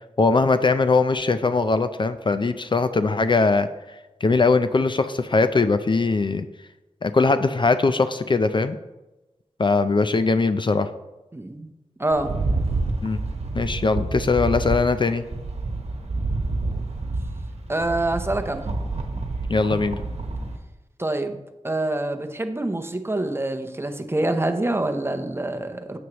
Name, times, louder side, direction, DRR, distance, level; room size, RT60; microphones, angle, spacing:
voice 1, 0.2-3.7 4.2-6.5 7.0-8.8 9.6-10.9 13.0-13.2 13.5-15.2 19.5-20.0, left 3 dB, 45° left, 10 dB, 0.4 m, -20 dB
voice 2, 11.3-11.7 12.0-12.3 17.7-18.7 21.0-21.4 21.6-26.0, right 2 dB, 20° right, 6 dB, 0.7 m, -26 dB
Rattle, 12.1-20.6, right 2 dB, 65° right, 1.1 m, -28 dB
9.2 x 7.8 x 3.0 m, 1.0 s
wide cardioid pair, 65°, 12 cm